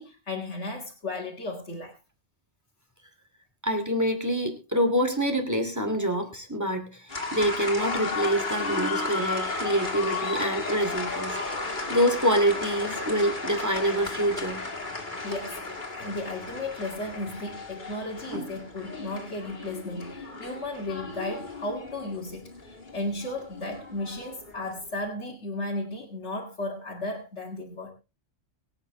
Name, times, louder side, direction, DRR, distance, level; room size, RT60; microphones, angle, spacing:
voice 1, 0.0-1.9 15.2-27.9, left 2 dB, 60° left, -3 dB, 2.6 m, -35 dB
voice 2, 3.6-14.6 18.3-18.6, equal, 15° right, 5 dB, 2.6 m, -26 dB
sound 1, 7.1-24.8, left 3 dB, 40° left, 2.9 m, -34 dB
23.5 x 8.9 x 3.2 m, 0.29 s
omnidirectional pair, 1.3 m